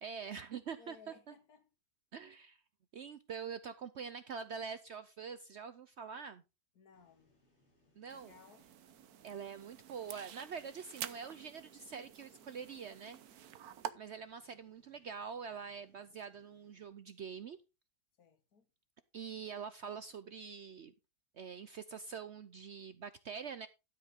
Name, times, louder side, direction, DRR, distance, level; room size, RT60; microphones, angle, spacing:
voice 1, 0.0-1.3 2.1-2.6 2.9-6.4 8.0-8.3 9.2-13.5 13.9-17.6 19.1-20.9 21.3-23.7, right 6 dB, 60° right, 0.8 m, -45 dB
voice 2, 0.8-1.7 6.8-7.4 8.1-8.7 18.2-18.7, left 5 dB, 75° left, 1.9 m, -61 dB
sound 1, 6.9-16.9, left 1 dB, 45° left, 5.0 m, -74 dB
sound 2, 8.1-13.9, right 10 dB, 75° right, 1.3 m, -49 dB
12.5 x 8.0 x 3.7 m
omnidirectional pair, 1.6 m